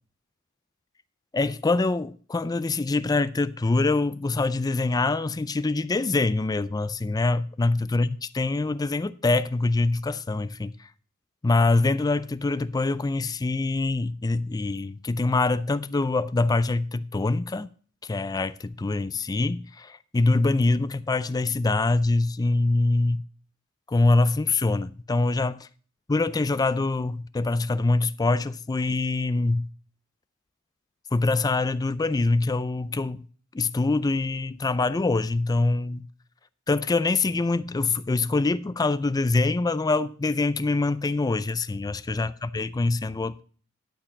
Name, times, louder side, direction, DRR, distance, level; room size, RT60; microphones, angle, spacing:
voice 1, 1.3-10.7 11.4-17.7 18.0-23.2 23.9-25.7 26.1-29.7 31.1-33.3 33.5-36.0 36.7-43.4, left 3 dB, 20° left, 0.3 m, -24 dB
12.0 x 4.9 x 5.8 m
head